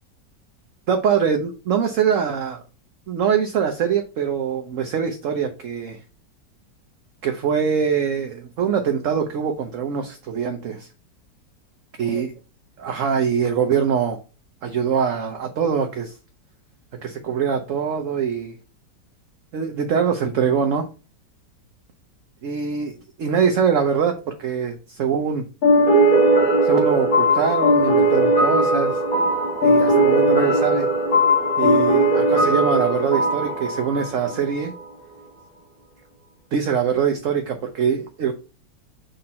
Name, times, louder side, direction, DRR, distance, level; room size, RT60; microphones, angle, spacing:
voice 1, 0.9-2.6 3.1-6.0 7.2-10.9 12.0-12.3 12.8-14.2 14.6-16.1 17.0-18.5 19.5-20.9 22.4-24.1 24.4-25.4 26.6-29.0 29.6-30.9 31.6-34.7 36.5-38.3, right 7 dB, 55° right, 5 dB, 0.9 m, -23 dB
sound 1, 25.6-34.9, right 1 dB, 50° left, 2.2 m, -18 dB
6.5 x 4.3 x 4.2 m, 0.33 s
omnidirectional pair, 2.0 m